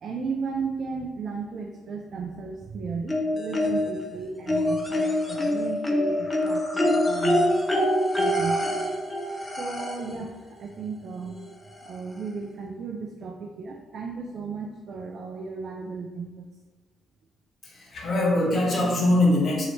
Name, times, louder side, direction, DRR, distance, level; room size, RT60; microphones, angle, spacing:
voice 1, 0.0-7.5 8.2-8.8 9.6-11.3 11.8-16.5, right 4 dB, 60° right, 1 dB, 0.3 m, -35 dB
sound 1, 3.1-4.0 4.5-10.2 11.4-11.5 11.8-11.9, left 1 dB, 20° left, 0.5 m, -25 dB
voice 2, 17.6-19.6, left 1 dB, 50° left, -2 dB, 0.9 m, -22 dB
3.1 x 2.8 x 2.7 m, 1.3 s
cardioid pair, 90°, 0 cm